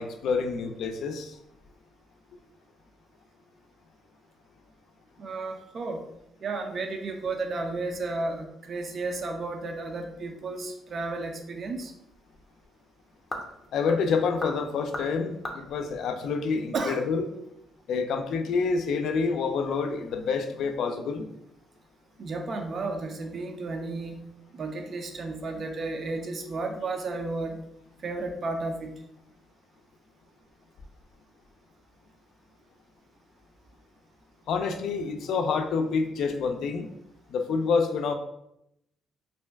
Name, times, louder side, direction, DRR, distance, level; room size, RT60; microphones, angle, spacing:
voice 1, 0.0-1.4 13.7-17.3 17.9-21.3 34.5-36.9 37.3-38.1, left 5 dB, 75° left, 6 dB, 0.3 m, -27 dB
voice 2, 5.2-6.0 6.4-11.9 16.7-17.0 22.2-24.2 24.5-27.6 28.0-28.9, right 3 dB, 50° right, 4 dB, 0.4 m, -33 dB
sound 1, 11.2-17.0, left 1 dB, 25° left, 0.5 m, -42 dB
2.5 x 2.2 x 3.3 m, 0.80 s
cardioid pair, 90°, 0 cm